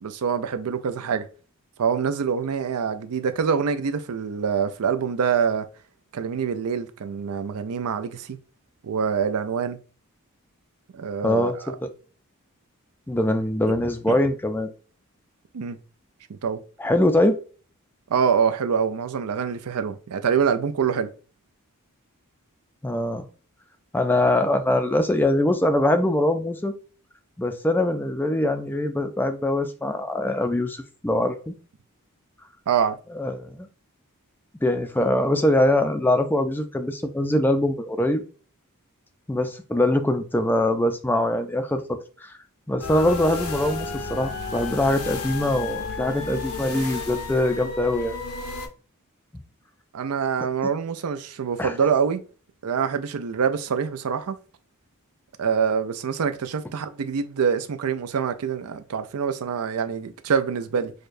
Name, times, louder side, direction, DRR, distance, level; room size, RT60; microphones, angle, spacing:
voice 1, 0.0-1.3 1.8-5.7 6.1-8.4 8.8-9.8 10.9-11.7 14.1-14.2 15.5-15.8 16.3-16.6 18.1-21.1 32.7-33.0 49.9-52.2 52.6-54.4 55.4-60.9, right 6 dB, 80° right, 0.5 m, -25 dB
voice 2, 11.2-11.5 11.8-11.9 13.1-14.7 16.8-17.4 22.8-23.2 23.9-26.7 27.4-31.5 33.2-33.7 34.6-38.2 39.3-42.3 42.7-48.2 51.6-51.7, left 1 dB, 10° left, 0.4 m, -23 dB
sound 1, 42.8-48.7, left 4 dB, 75° left, 0.8 m, -32 dB
6.4 x 2.2 x 2.5 m
head